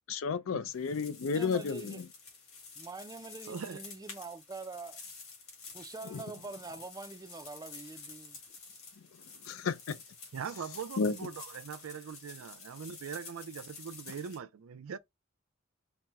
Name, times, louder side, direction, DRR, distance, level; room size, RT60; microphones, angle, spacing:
voice 1, 0.1-2.0 6.1-6.2 9.5-10.0 11.0-11.2, left 5 dB, 75° left, 0.4 m, -32 dB
sound 1, 0.7-14.4, left 4 dB, 90° left, 1.7 m, -50 dB
voice 2, 1.3-2.0 2.8-5.0 5.7-8.4, right 3 dB, 20° right, 0.4 m, -44 dB
voice 3, 3.5-3.8 10.3-15.0, right 7 dB, 90° right, 0.4 m, -41 dB
4.3 x 2.1 x 3.5 m
head